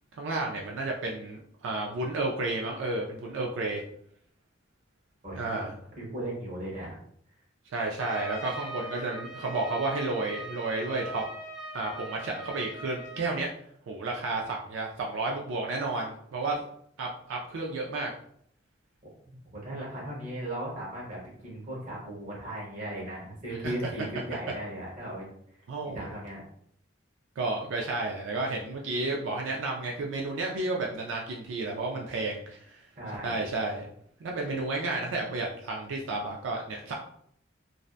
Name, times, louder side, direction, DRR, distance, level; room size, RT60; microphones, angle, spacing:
voice 1, 0.1-3.8 5.3-5.7 7.7-11.2 11.7-13.5 13.9-16.6 17.0-18.1 23.6-23.9 25.7-26.1 27.4-32.9 33.2-33.9 34.2-36.9, right 2 dB, 85° right, 0 dB, 0.4 m, -32 dB
voice 2, 5.2-5.6 6.0-7.0 19.2-25.3 25.9-26.4 33.0-33.4, right 1 dB, 40° right, -4 dB, 1.0 m, -37 dB
Trumpet, 8.0-13.3, right 1 dB, ahead, 0.7 m, -41 dB
2.6 x 2.1 x 2.4 m, 0.67 s
head